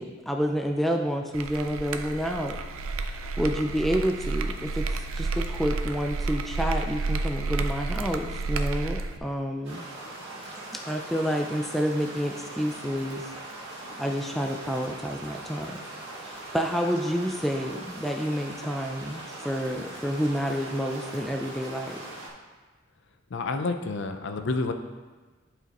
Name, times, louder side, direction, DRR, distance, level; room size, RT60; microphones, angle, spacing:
voice 1, 0.0-2.6 3.1-9.9 10.7-13.3 14.0-15.8 16.2-22.0, equal, ahead, 2 dB, 0.3 m, -29 dB
sound 1, 1.3-9.2, right 3 dB, 75° right, 0.5 m, -30 dB
sound 2, 9.6-22.3, right 2 dB, 55° right, 1.7 m, -41 dB
voice 2, 23.3-24.7, left 3 dB, 60° left, 6 dB, 0.5 m, -29 dB
11.0 x 4.9 x 2.9 m, 1.3 s
head